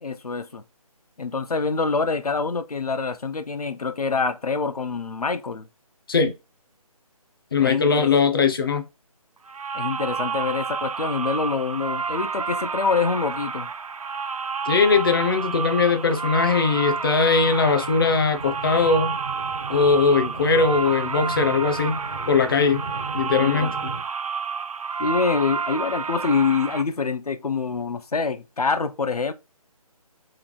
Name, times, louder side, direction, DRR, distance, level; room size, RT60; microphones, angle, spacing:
voice 1, 0.0-0.6 1.2-5.7 7.6-8.1 9.7-13.7 23.3-24.0 25.0-29.3, left 4 dB, 75° left, 0.6 m, -25 dB
voice 2, 7.5-8.8 14.7-19.2 19.7-22.8 23.1-23.7, left 4 dB, 35° left, 0.7 m, -20 dB
sound 1, 9.5-26.8, right 5 dB, 65° right, 0.5 m, -30 dB
sound 2, 17.4-24.0, right 3 dB, 10° right, 0.4 m, -38 dB
3.3 x 2.9 x 3.9 m
figure-of-eight pair, 150°, 19 cm